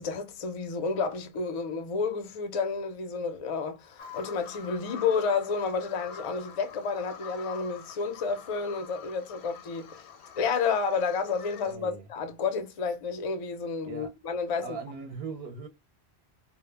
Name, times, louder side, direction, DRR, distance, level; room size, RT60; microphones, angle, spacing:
voice 1, 0.0-10.0 10.4-14.8, left 5 dB, 50° left, 0.4 m, -30 dB
Bird vocalization bird call bird song, 4.0-11.7, left 7 dB, 80° left, 0.9 m, -46 dB
voice 2, 11.6-12.1 13.8-14.1 14.6-15.7, right 5 dB, 65° right, 0.7 m, -39 dB
2.1 x 2.0 x 3.1 m
omnidirectional pair, 1.1 m